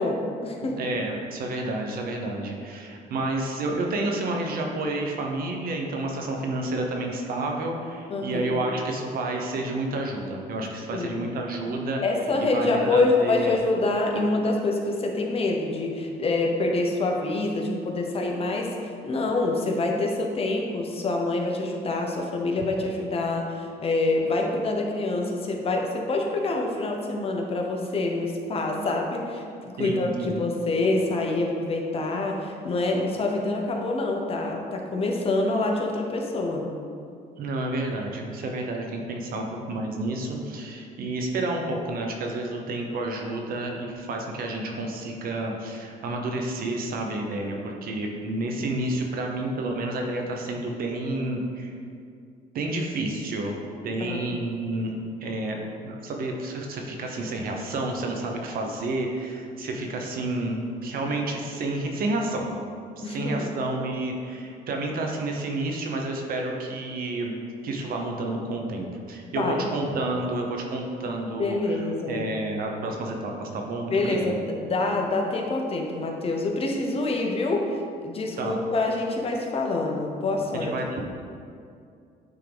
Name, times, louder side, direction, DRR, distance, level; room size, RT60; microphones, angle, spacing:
voice 1, 0.0-0.8 8.1-8.7 10.9-11.2 12.0-36.7 54.0-54.3 63.0-63.4 69.3-69.7 71.4-72.2 73.9-80.7, left 2 dB, 35° left, 1 dB, 0.9 m, -26 dB
voice 2, 0.6-12.0 12.5-13.6 29.8-30.4 37.4-51.7 52.5-53.6 53.8-62.5 63.0-67.3 67.6-74.4 78.4-78.6 80.7-81.0, right 2 dB, 60° right, 1 dB, 1.0 m, -30 dB
9.2 x 3.8 x 3.5 m, 2.3 s
cardioid pair, 110°, 17 cm